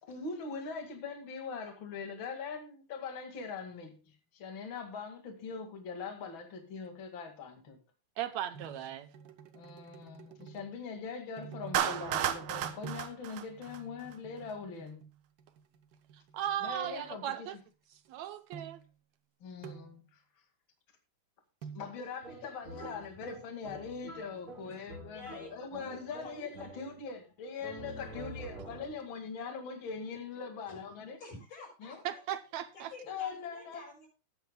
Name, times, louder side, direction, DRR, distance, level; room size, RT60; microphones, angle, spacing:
voice 1, 0.0-7.8 9.5-15.1 16.6-17.6 19.4-20.2 21.7-31.2 31.8-32.0 33.1-33.8, left 5 dB, 45° left, 2.6 m, -42 dB
voice 2, 8.2-9.1 16.3-17.6 18.1-18.8 32.1-32.9, right 11 dB, 75° right, 1.9 m, -37 dB
sound 1, 8.5-10.8 11.4-13.2 13.5-17.2 18.0-18.1 18.5-18.9 19.6-20.0 21.6-22.0, right 7 dB, 60° right, 1.3 m, -50 dB
Clapping, 11.7-14.1, right 10 dB, 90° right, 2.4 m, -33 dB
sound 2, 22.2-27.2 27.6-29.1, right 1 dB, 25° right, 3.0 m, -48 dB
voice 3, 25.1-25.6 25.9-26.7 28.0-28.4 30.7-30.8 31.2-32.2 32.7-34.1, left 2 dB, 75° left, 7.5 m, -50 dB
19.0 x 9.3 x 2.2 m
omnidirectional pair, 3.4 m